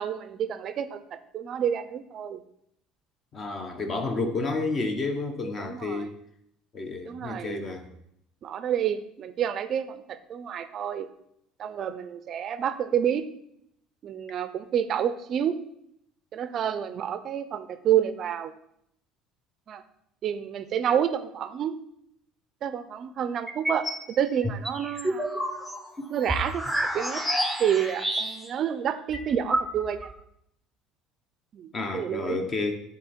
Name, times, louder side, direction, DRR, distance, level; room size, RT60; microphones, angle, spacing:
voice 1, 0.0-2.4 5.6-6.1 7.0-7.6 8.4-11.1 11.6-13.2 14.0-15.6 16.3-18.5 19.7-19.8 20.2-21.8 22.6-25.3 26.1-27.2 27.6-30.1 31.5-32.4, right 9 dB, 45° right, 11 dB, 0.5 m, -29 dB
voice 2, 3.3-6.1 6.7-7.9 31.7-32.7, left 3 dB, 30° left, 5 dB, 1.1 m, -30 dB
sound 1, 23.5-24.0 24.4-28.6 28.9-29.0 29.1-30.1, equal, 5° left, 0.9 m, -29 dB
9.8 x 3.8 x 4.4 m, 0.74 s
cardioid pair, 135°, 0 cm